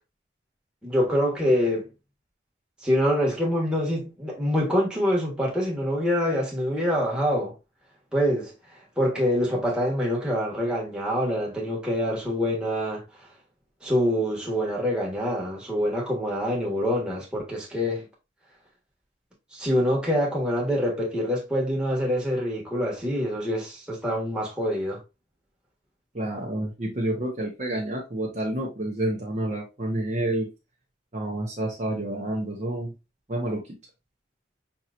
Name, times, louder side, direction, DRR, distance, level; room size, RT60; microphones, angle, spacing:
voice 1, 0.8-1.9 2.8-7.5 8.1-13.0 13.8-18.0 19.5-25.0, equal, 5° right, 1.3 m, -25 dB
voice 2, 26.1-30.5 31.1-32.9 33.3-33.8, right 1 dB, 35° right, 0.9 m, -29 dB
5.5 x 2.9 x 2.4 m
head